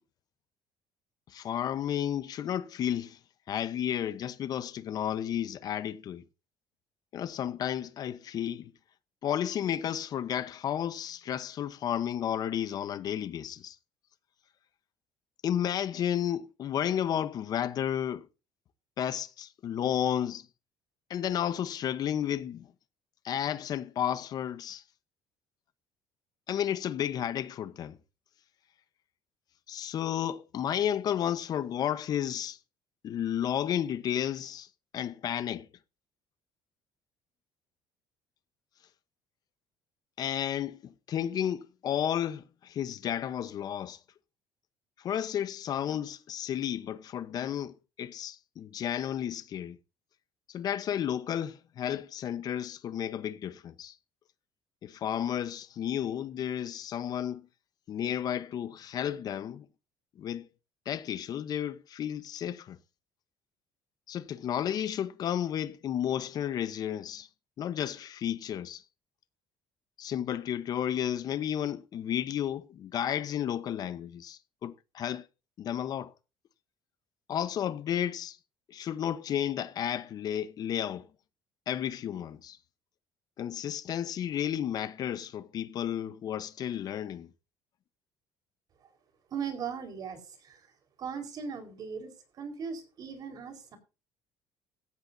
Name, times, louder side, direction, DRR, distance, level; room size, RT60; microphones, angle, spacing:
voice 1, 1.3-3.2 3.5-6.2 7.1-8.7 9.2-13.8 15.4-18.3 19.0-20.5 21.1-22.7 23.2-24.8 26.5-28.0 29.7-32.6 33.0-34.7 34.9-35.7 40.2-44.0 45.0-49.8 50.5-54.0 54.8-57.5 57.9-59.7 60.2-60.5 60.9-62.8 64.1-67.3 67.6-68.8 70.0-75.3 75.6-76.1 77.3-78.4 78.7-81.1 81.7-82.6 83.4-87.3, left 10 dB, 45° left, 0.9 m, -32 dB
voice 2, 89.3-90.7 91.0-93.8, right 6 dB, 45° right, 4.6 m, -38 dB
16.5 x 14.5 x 2.7 m
cardioid pair, 135°, 9 cm